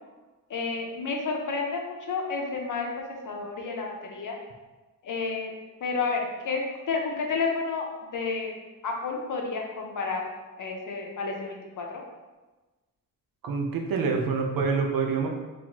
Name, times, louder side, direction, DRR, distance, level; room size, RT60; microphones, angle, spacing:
voice 1, 0.5-2.9 3.2-4.4 5.0-5.5 5.8-6.6 6.9-7.9 8.1-8.5 8.8-10.3 10.6-11.9, left 4 dB, 65° left, 1 dB, 0.8 m, -30 dB
voice 2, 13.4-15.3, right 5 dB, 85° right, 2 dB, 0.7 m, -26 dB
4.1 x 3.1 x 2.9 m, 1.2 s
wide cardioid pair, 135°, 33 cm